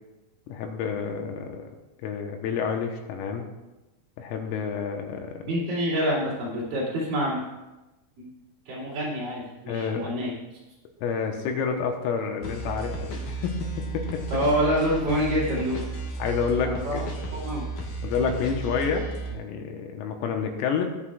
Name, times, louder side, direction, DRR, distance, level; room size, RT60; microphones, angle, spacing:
voice 1, 0.5-1.6 2.0-3.5 4.2-5.4 9.7-10.1 11.0-14.2 16.2-17.1 18.0-20.9, left 6 dB, 85° left, 3 dB, 3.8 m, -29 dB
voice 2, 5.4-7.4 8.2-8.3 8.7-10.3 14.3-15.9 16.6-17.0 17.3-17.7, equal, 45° right, -7 dB, 3.8 m, -27 dB
sound 1, 12.4-19.4, right 3 dB, 65° left, 2.2 m, -34 dB
20.5 x 8.2 x 2.4 m, 1.1 s
omnidirectional pair, 6.0 m